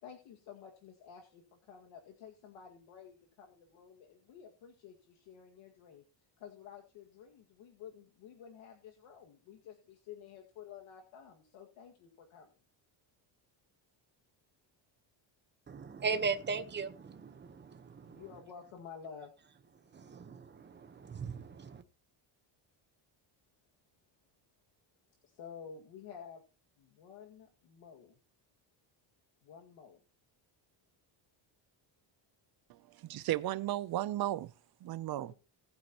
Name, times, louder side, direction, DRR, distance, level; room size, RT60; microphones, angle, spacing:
voice 1, 0.0-6.0 6.4-12.5 18.0-19.3 25.2-26.4 26.8-28.2 29.4-30.0 35.0-35.3, left 7 dB, 75° left, 2.1 m, -52 dB
voice 2, 15.7-18.2 19.9-21.8, right 5 dB, 20° right, 1.0 m, -38 dB
voice 3, 32.7-34.5 34.8-35.3, right 14 dB, 50° right, 0.6 m, -35 dB
19.0 x 8.5 x 3.0 m
cardioid pair, 155°, 47 cm